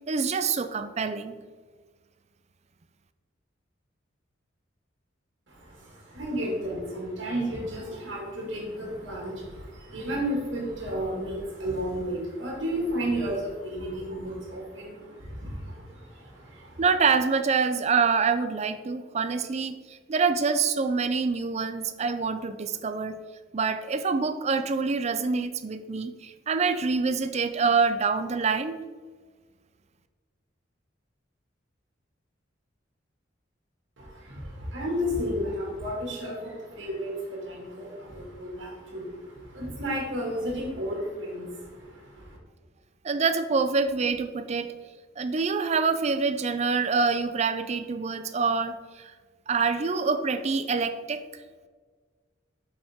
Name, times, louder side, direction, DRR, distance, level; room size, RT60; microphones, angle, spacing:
voice 1, 0.1-1.4 16.8-23.2 23.5-28.8 43.0-44.7 45.2-49.1 49.5-51.2, right 5 dB, 35° right, 10 dB, 0.4 m, -26 dB
voice 2, 5.5-16.8 34.0-42.4, equal, 75° right, -3 dB, 2.1 m, -33 dB
7.3 x 5.4 x 3.6 m, 1.5 s
head